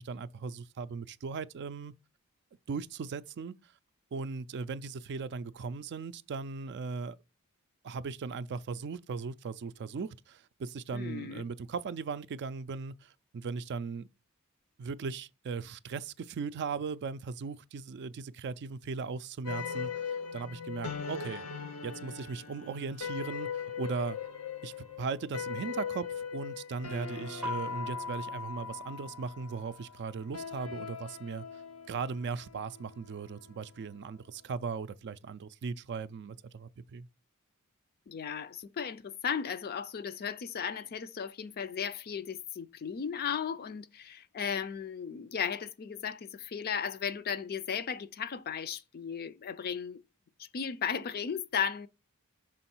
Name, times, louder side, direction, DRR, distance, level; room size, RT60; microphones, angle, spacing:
voice 1, 0.0-1.9 2.7-3.6 4.1-7.2 7.8-14.1 14.8-21.4 21.8-24.2 24.6-31.6 31.9-37.1, right 5 dB, 50° right, 0.4 m, -38 dB
voice 2, 10.9-11.4 38.1-50.0 50.4-51.9, left 7 dB, 45° left, 0.4 m, -35 dB
sound 1, 19.4-34.0, left 6 dB, 85° left, 0.9 m, -40 dB
sound 2, 27.4-30.1, left 4 dB, 5° right, 0.5 m, -40 dB
6.2 x 3.9 x 4.4 m
head